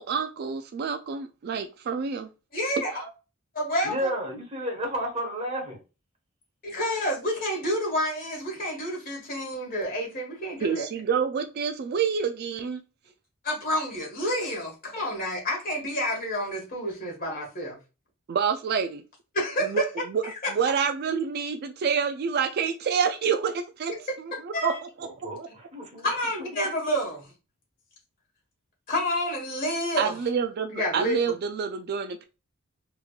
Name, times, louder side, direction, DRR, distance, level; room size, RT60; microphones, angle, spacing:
voice 1, 0.0-2.3 3.0-3.1 10.6-12.8 18.3-19.0 19.6-20.2 20.5-25.1 25.4-25.5 30.0-32.2, right 6 dB, 50° right, 0.3 m, -28 dB
voice 2, 2.5-2.9 3.5-4.1 6.6-10.8 13.4-17.8 19.3-19.9 20.2-20.3 24.5-24.8 26.0-27.3 28.9-30.1 30.7-31.2, equal, 40° left, 1.7 m, -29 dB
voice 3, 3.8-5.8 25.0-26.1 26.4-26.5, right 1 dB, 30° right, 1.4 m, -32 dB
3.5 x 3.2 x 2.3 m
head